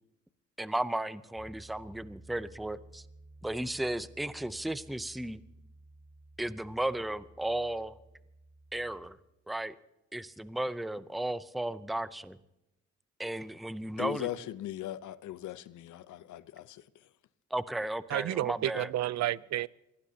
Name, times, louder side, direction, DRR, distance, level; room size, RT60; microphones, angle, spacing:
voice 1, 0.6-3.0 3.4-5.4 6.4-8.0 8.7-9.2 9.5-9.8 10.1-12.4 13.2-14.3 17.5-18.9, right 1 dB, ahead, 0.6 m, -34 dB
Piano, 1.4-9.0, right 2 dB, 40° left, 4.2 m, -55 dB
voice 2, 14.0-16.8, left 13 dB, 75° left, 0.8 m, -39 dB
voice 3, 18.1-19.7, right 13 dB, 65° right, 0.6 m, -31 dB
25.0 x 19.0 x 2.8 m
cardioid pair, 90°, 30 cm